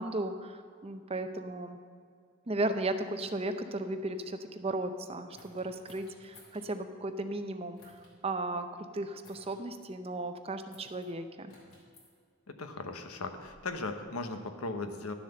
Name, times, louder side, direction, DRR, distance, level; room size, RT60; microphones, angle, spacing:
voice 1, 0.0-1.8 2.5-8.0 8.2-11.5, right 2 dB, 25° right, 8 dB, 0.6 m, -35 dB
sound 1, 5.3-6.6 7.7-8.1 9.2-9.6 10.7-11.1 11.5-12.1 13.0-14.4, left 2 dB, 60° left, 3.3 m, -59 dB
voice 2, 12.6-15.1, left 3 dB, 80° left, 7 dB, 1.0 m, -37 dB
12.0 x 7.4 x 6.7 m, 2.2 s
head